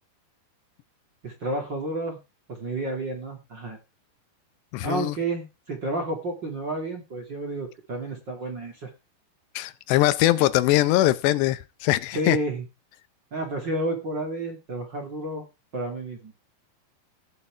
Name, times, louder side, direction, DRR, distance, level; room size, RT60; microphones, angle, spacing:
voice 1, 1.2-2.2 2.5-3.8 4.8-8.9 12.1-12.6 13.3-15.4 15.7-16.3, right 2 dB, 35° right, 2.4 m, -31 dB
voice 2, 4.7-5.2 9.6-12.4, left 16 dB, 85° left, 2.8 m, -22 dB
17.0 x 6.5 x 4.5 m
omnidirectional pair, 4.9 m